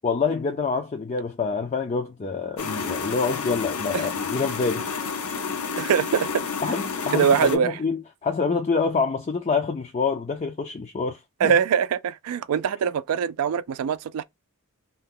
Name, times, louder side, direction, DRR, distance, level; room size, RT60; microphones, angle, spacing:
voice 1, 0.0-4.9 6.6-11.5, left 4 dB, 30° left, 0.4 m, -26 dB
sound 1, 2.6-7.6, left 5 dB, 80° left, 0.6 m, -30 dB
voice 2, 5.8-6.3 7.1-7.7 11.4-14.2, right 7 dB, 80° right, 0.3 m, -23 dB
2.8 x 2.1 x 3.6 m
head